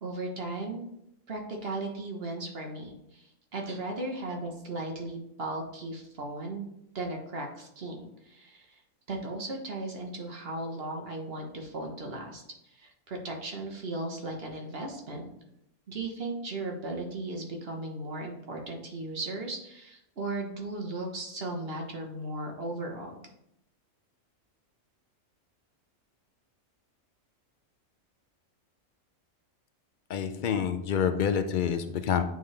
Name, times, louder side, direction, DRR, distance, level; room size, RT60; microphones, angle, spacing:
voice 1, 0.0-0.8 1.3-6.7 6.9-8.8 9.1-15.3 15.9-23.1, right 2 dB, 50° right, 1 dB, 1.2 m, -36 dB
voice 2, 30.1-32.2, left 7 dB, 80° left, 8 dB, 0.4 m, -27 dB
9.2 x 3.5 x 3.2 m, 0.78 s
omnidirectional pair, 1.4 m